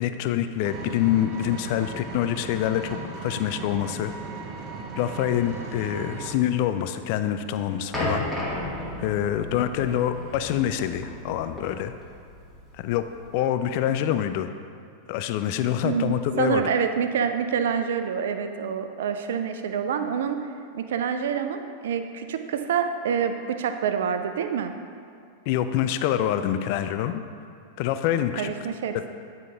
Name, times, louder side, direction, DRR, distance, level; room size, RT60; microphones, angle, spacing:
voice 1, 0.0-4.1 5.0-8.3 9.0-11.9 12.8-13.0 13.3-14.5 15.1-16.6 25.5-27.2 27.8-28.5, left 11 dB, 45° left, 9 dB, 0.3 m, -26 dB
Vehicle, 0.6-6.3, right 3 dB, 35° right, 0.7 m, -37 dB
sound 1, 7.9-13.3, left 1 dB, 5° left, 1.2 m, -34 dB
voice 2, 15.8-20.4 20.7-24.7 28.1-29.1, right 7 dB, 60° right, 8 dB, 0.4 m, -27 dB
9.1 x 3.7 x 3.4 m, 2.5 s
figure-of-eight pair, 90°, 0 cm